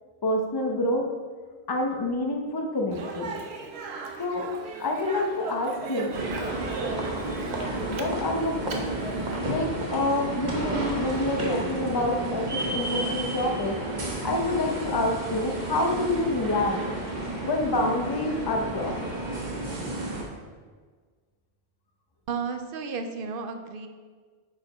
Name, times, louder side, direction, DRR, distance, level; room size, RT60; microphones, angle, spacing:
voice 1, 0.2-1.1 1.7-3.3 4.2-4.5 4.8-6.1 7.9-8.8 9.5-13.8 14.2-16.8 17.4-19.0, left 1 dB, 25° left, 2 dB, 0.7 m, -27 dB
Speech, 2.9-9.4, right 4 dB, 85° right, 1.0 m, -37 dB
sound 1, 6.1-20.2, right 2 dB, 45° right, 1.2 m, -31 dB
voice 2, 22.3-23.9, right 5 dB, 60° right, 7 dB, 0.8 m, -33 dB
8.8 x 4.9 x 4.2 m, 1.5 s
omnidirectional pair, 1.1 m